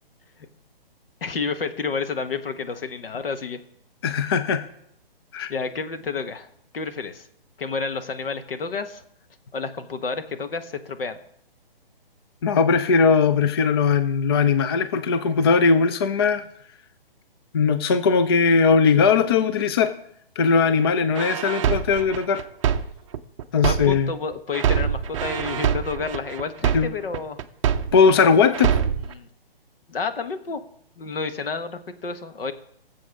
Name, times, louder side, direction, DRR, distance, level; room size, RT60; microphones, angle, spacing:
voice 1, 1.2-3.6 5.5-6.5 6.7-7.3 7.6-9.0 9.5-11.2 23.6-27.4 29.1-29.3 29.9-30.6 31.0-32.5, left 5 dB, 70° left, 8 dB, 1.3 m, -30 dB
voice 2, 4.0-4.6 5.3-5.5 12.4-16.4 17.5-19.9 20.4-22.4 23.5-24.1 26.7-26.9 27.9-28.8, left 5 dB, 25° left, 10 dB, 0.4 m, -19 dB
sound 1, 21.2-24.2 24.5-28.2 28.5-29.1, right 8 dB, 35° right, 0.6 m, -24 dB
18.5 x 7.6 x 3.5 m, 0.71 s
hypercardioid pair, 140°, 30 cm